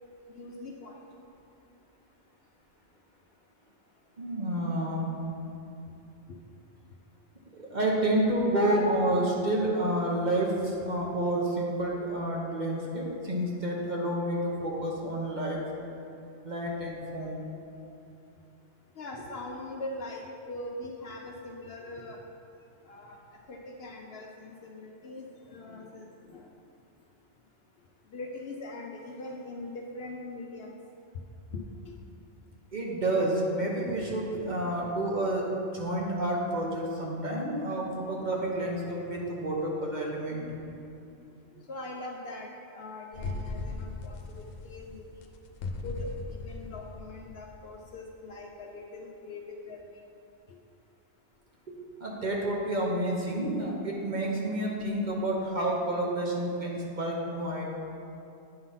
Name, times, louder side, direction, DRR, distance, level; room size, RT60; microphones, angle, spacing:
voice 1, 0.3-1.0 6.3-6.4 19.0-22.2 22.9-26.5 28.1-30.8 31.5-32.0 41.7-45.0 45.8-50.0, left 2 dB, 60° left, 1 dB, 0.7 m, -42 dB
voice 2, 4.2-5.0 7.5-15.6 16.4-17.4 32.7-40.4 51.7-57.6, right 1 dB, 40° right, -2 dB, 1.0 m, -29 dB
sound 1, 43.1-47.9, left 3 dB, 85° left, 1.0 m, -38 dB
8.8 x 3.8 x 5.6 m, 2.6 s
omnidirectional pair, 1.3 m